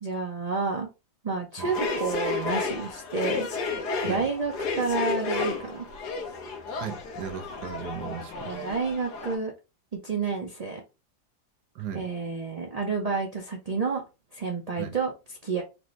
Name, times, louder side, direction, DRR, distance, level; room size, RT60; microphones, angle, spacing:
voice 1, 0.0-0.9 1.2-3.5 4.0-5.8 8.4-9.5 10.0-10.8 11.9-14.0 14.3-15.1 15.4-15.6, right 4 dB, 50° right, 0.4 m, -29 dB
sound 1, 1.6-9.4, left 4 dB, 80° left, 1.5 m, -32 dB
voice 2, 6.8-8.7 11.7-12.1 14.8-15.0, right 8 dB, 90° right, 1.4 m, -37 dB
4.6 x 2.6 x 3.1 m
omnidirectional pair, 1.7 m